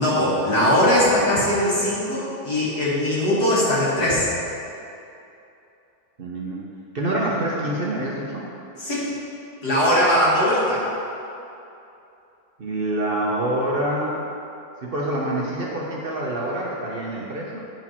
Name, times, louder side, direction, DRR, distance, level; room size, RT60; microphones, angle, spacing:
voice 1, 0.0-4.3 8.8-9.0 9.6-10.8, left 1 dB, 85° left, -8 dB, 2.6 m, -20 dB
voice 2, 6.2-6.6 6.9-8.5 12.6-14.2 14.8-17.6, right 1 dB, 45° right, -4 dB, 0.8 m, -26 dB
8.9 x 4.5 x 4.3 m, 2.7 s
omnidirectional pair, 1.6 m